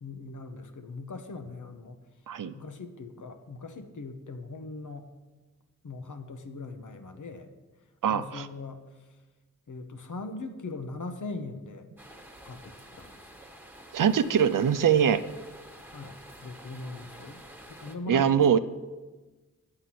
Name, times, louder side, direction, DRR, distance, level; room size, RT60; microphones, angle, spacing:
voice 1, 0.0-2.0 2.5-5.1 5.8-7.5 8.1-8.8 9.7-11.9 12.4-12.6 12.9-13.3 15.9-17.4 17.8-18.6, left 3 dB, 70° left, 7 dB, 1.0 m, -40 dB
voice 2, 8.0-8.5 13.9-15.2 18.1-18.6, right 8 dB, 80° right, 12 dB, 0.6 m, -22 dB
sound 1, 12.0-18.0, right 1 dB, 5° right, 1.3 m, -49 dB
8.4 x 7.8 x 5.9 m, 1.2 s
cardioid pair, 50°, 32 cm